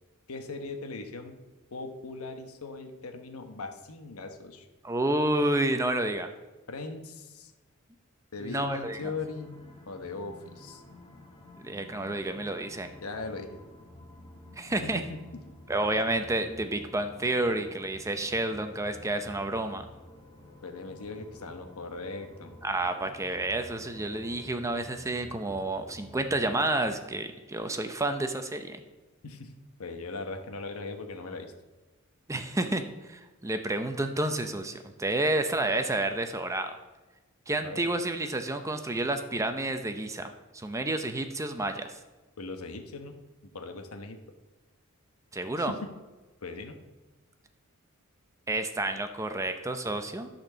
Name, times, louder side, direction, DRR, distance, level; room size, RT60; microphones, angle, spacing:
voice 1, 0.3-1.4 1.7-4.6 6.7-7.5 8.3-10.8 13.0-13.6 14.8-15.6 20.6-22.6 29.2-29.5 29.8-31.5 37.6-37.8 42.4-43.2 43.4-44.2 45.6-45.9 46.4-46.8, left 3 dB, 80° left, 6 dB, 1.0 m, -39 dB
voice 2, 4.8-6.3 8.4-9.0 11.6-12.9 14.5-15.0 15.7-19.8 22.6-28.8 32.3-36.7 37.5-42.0 45.3-45.7 48.5-50.3, right 2 dB, 15° right, 7 dB, 0.6 m, -30 dB
sound 1, 8.8-26.7, left 2 dB, 25° left, 1.5 m, -51 dB
11.5 x 4.4 x 6.7 m, 1.2 s
head